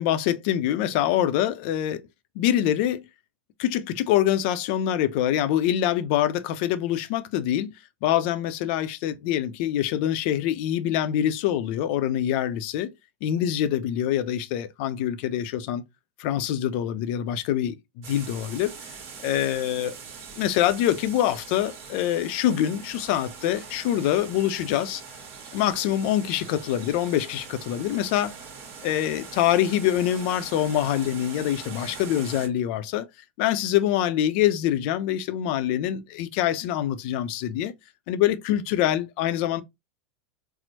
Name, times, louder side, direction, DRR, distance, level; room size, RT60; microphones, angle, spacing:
voice 1, 0.0-2.1 2.4-3.0 3.6-7.7 8.0-12.9 13.2-15.8 16.2-18.7 19.2-20.0 20.4-25.0 25.5-28.3 28.8-33.1 33.4-37.7 38.1-39.6, left 11 dB, 60° left, 0.5 m, -25 dB
sound 1, 18.0-32.5, right 6 dB, 45° right, 1.2 m, -42 dB
4.3 x 2.0 x 2.8 m
hypercardioid pair, 105°, 6 cm